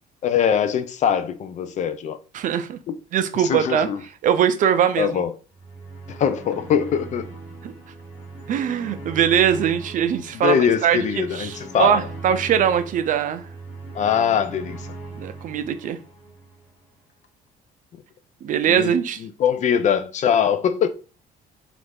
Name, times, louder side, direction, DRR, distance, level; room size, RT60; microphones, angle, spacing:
voice 1, 0.2-2.2 2.9-3.0 3.4-4.0 5.0-5.3 6.1-7.3 10.3-12.0 13.9-14.9 18.8-18.9 19.2-20.9, left 8 dB, 45° left, 0.4 m, -22 dB
voice 2, 2.3-2.8 3.1-3.9 4.2-5.1 7.6-7.7 8.5-13.4 15.1-16.0 18.4-19.2, right 9 dB, 50° right, 0.4 m, -21 dB
sound 1, 5.5-16.8, right 2 dB, 10° left, 1.8 m, -39 dB
3.1 x 2.5 x 3.3 m
cardioid pair, 110°, 17 cm